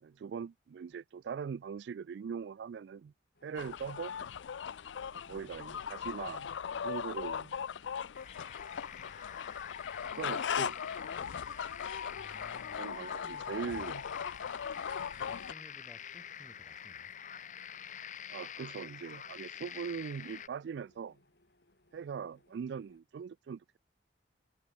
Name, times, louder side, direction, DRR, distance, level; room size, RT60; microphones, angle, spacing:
voice 1, 0.0-3.1 3.4-4.2 5.1-7.5 10.1-10.8 12.7-14.0 14.6-14.7 18.3-21.2 21.9-23.6, right 6 dB, 70° right, 0.3 m, -41 dB
sound 1, 3.3-23.0, left 2 dB, 60° left, 2.6 m, -68 dB
sound 2, 3.6-15.5, left 7 dB, 80° left, 0.4 m, -39 dB
sound 3, 8.1-20.5, left 9 dB, 40° left, 1.0 m, -47 dB
voice 2, 12.1-13.9 15.2-17.1, equal, ahead, 2.7 m, -57 dB
head